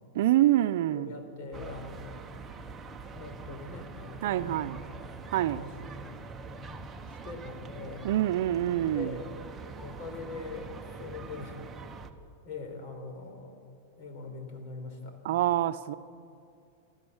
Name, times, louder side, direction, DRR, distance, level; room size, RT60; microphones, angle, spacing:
voice 1, 0.1-1.1 4.2-4.8 5.3-5.6 8.0-9.1 15.2-15.9, right 13 dB, 65° right, 0.7 m, -26 dB
voice 2, 0.9-2.1 3.1-4.9 5.5-6.1 7.1-8.1 8.9-9.5 9.8-11.6 12.4-13.6 14.0-15.2, left 3 dB, 55° left, 4.2 m, -42 dB
sound 1, 1.5-12.1, right 3 dB, 15° right, 1.1 m, -44 dB
27.0 x 13.5 x 7.2 m
supercardioid pair, 145°, 0 cm